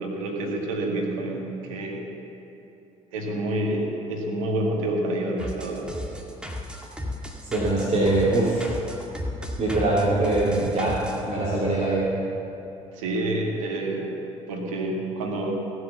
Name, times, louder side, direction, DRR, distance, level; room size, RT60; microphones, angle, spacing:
voice 1, 0.0-2.0 3.1-5.9 12.9-14.1 14.5-15.5, right 1 dB, 75° right, 0 dB, 1.9 m, -28 dB
sound 1, 5.4-11.2, left 1 dB, 5° right, 2.1 m, -35 dB
voice 2, 7.4-8.7 9.6-11.0 11.2-12.1, right 2 dB, 40° right, -6 dB, 2.7 m, -22 dB
16.5 x 8.0 x 7.1 m, 3.0 s
hypercardioid pair, 50°, 17 cm